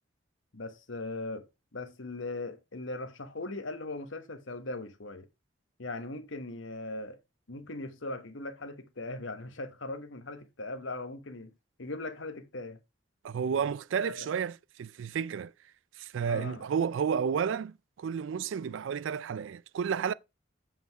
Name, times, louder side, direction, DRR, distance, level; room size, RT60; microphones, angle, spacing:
voice 1, 0.5-1.5 1.7-5.3 5.8-7.2 7.5-11.5 11.8-12.8 14.0-14.3 16.3-16.6, left 2 dB, 80° left, 1.4 m, -39 dB
voice 2, 13.2-15.5 16.0-20.1, right 7 dB, 80° right, 0.3 m, -31 dB
7.8 x 5.3 x 4.7 m
head